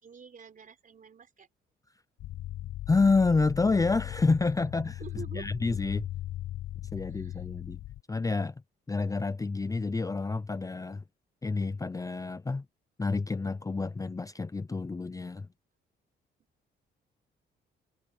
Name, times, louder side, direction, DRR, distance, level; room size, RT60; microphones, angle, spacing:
voice 1, 0.0-1.5 5.0-5.5 7.1-7.4, right 6 dB, 45° right, 4.2 m, -47 dB
sound 1, 2.2-8.0, left 14 dB, 70° left, 0.7 m, -38 dB
voice 2, 2.9-5.0 5.3-6.1 6.9-7.8 8.1-8.6 8.9-11.0 11.4-12.7 13.0-15.5, left 3 dB, 15° left, 0.6 m, -28 dB
cardioid pair, 90°, 20 cm